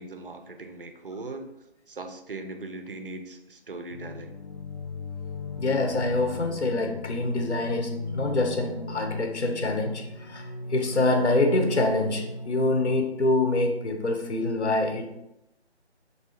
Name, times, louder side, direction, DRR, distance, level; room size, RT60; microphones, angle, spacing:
voice 1, 0.0-1.5 1.9-4.4, right 2 dB, 55° right, 7 dB, 0.4 m, -39 dB
sound 1, 3.9-13.0, left 2 dB, 45° left, 0.6 m, -37 dB
voice 2, 5.6-15.1, left 2 dB, 80° left, 3 dB, 0.8 m, -25 dB
3.2 x 2.7 x 3.1 m, 0.85 s
figure-of-eight pair, 160°, 34 cm